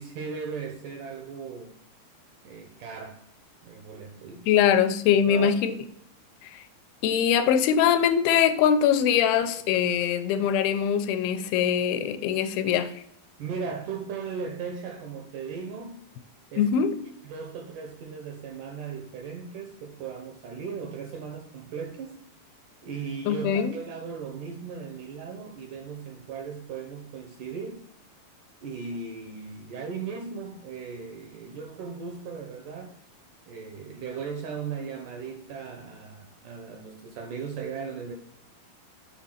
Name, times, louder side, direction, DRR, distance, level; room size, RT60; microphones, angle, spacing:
voice 1, 0.0-1.8 2.4-3.3 3.6-4.5 5.1-5.6 13.4-16.1 16.5-16.7 17.3-22.2 22.8-27.8 28.6-33.0 33.5-38.1, right 6 dB, 75° right, 3 dB, 1.9 m, -37 dB
voice 2, 4.5-5.8 6.4-6.6 7.0-12.9 16.6-17.0 23.3-23.8, left 8 dB, 85° left, 10 dB, 2.5 m, -22 dB
6.3 x 4.0 x 5.6 m, 0.69 s
omnidirectional pair, 4.5 m